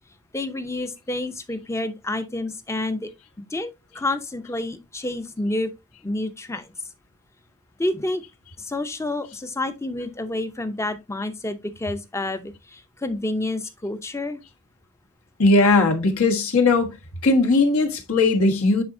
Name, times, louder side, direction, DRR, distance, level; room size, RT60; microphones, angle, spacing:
voice 1, 0.3-3.1 3.5-5.7 6.0-6.7 7.8-8.2 8.6-14.4, left 2 dB, 15° left, 0.6 m, -29 dB
voice 2, 15.4-16.9 17.2-18.8, left 3 dB, 75° left, 1.4 m, -18 dB
9.6 x 4.0 x 2.6 m
head